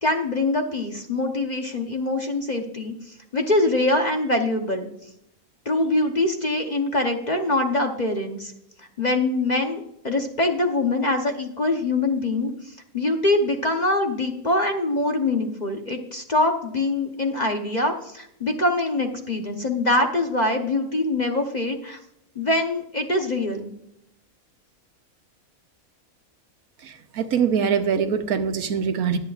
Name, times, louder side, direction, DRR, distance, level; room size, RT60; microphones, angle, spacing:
voice 1, 0.0-2.9 3.3-4.9 5.6-8.5 9.0-22.0 22.3-23.7, left 2 dB, 35° left, 3 dB, 0.9 m, -24 dB
voice 2, 26.8-29.2, right 7 dB, 75° right, 8 dB, 1.3 m, -23 dB
21.5 x 7.8 x 2.4 m, 0.78 s
omnidirectional pair, 1.5 m